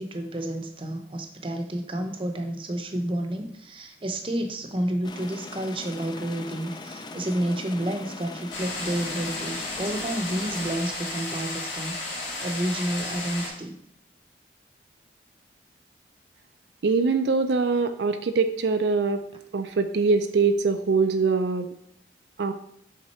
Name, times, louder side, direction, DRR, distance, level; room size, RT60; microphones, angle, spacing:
voice 1, 0.0-12.0 12.4-13.8, right 1 dB, 30° right, 5 dB, 0.7 m, -30 dB
sound 1, 5.0-10.8, left 3 dB, 25° left, 0.3 m, -40 dB
sound 2, 8.5-13.5, left 2 dB, 80° left, 2.3 m, -33 dB
voice 2, 16.8-19.2 19.5-21.7 22.4-22.5, right 4 dB, 75° right, 8 dB, 0.4 m, -23 dB
7.4 x 3.7 x 4.3 m, 0.72 s
head